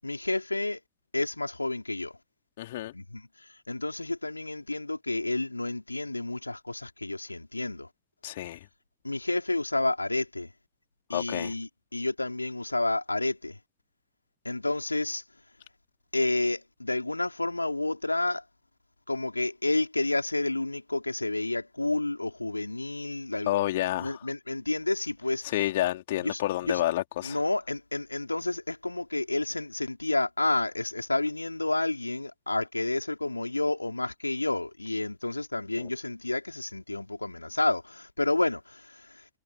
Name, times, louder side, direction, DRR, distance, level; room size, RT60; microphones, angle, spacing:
voice 1, 0.0-0.8 1.1-2.2 2.9-7.9 9.0-10.5 11.1-13.6 14.4-15.2 16.1-18.4 19.1-23.5 24.0-25.4 26.2-26.8 27.2-39.3, left 2 dB, 85° left, 4.5 m, -30 dB
voice 2, 2.6-2.9 8.2-8.6 11.1-11.5 23.5-24.2 25.5-27.4 35.8-35.9, left 15 dB, 55° left, 4.2 m, -29 dB
figure-of-eight pair, 90°, 0 cm